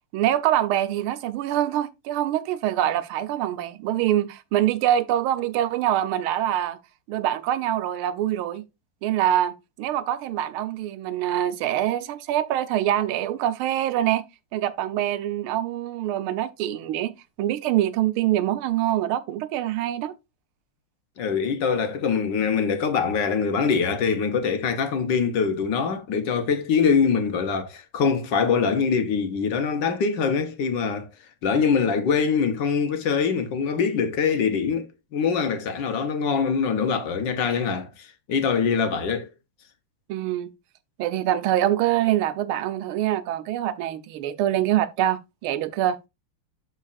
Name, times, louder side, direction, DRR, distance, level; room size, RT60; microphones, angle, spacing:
voice 1, 0.1-6.8 7.1-8.6 9.0-14.2 14.5-17.1 17.4-20.1 40.1-40.5 41.0-46.0, right 12 dB, 90° right, 1.5 m, -24 dB
voice 2, 21.2-31.1 31.4-34.9 35.1-39.3, left 6 dB, 65° left, 1.5 m, -23 dB
12.0 x 4.1 x 2.4 m
omnidirectional pair, 2.3 m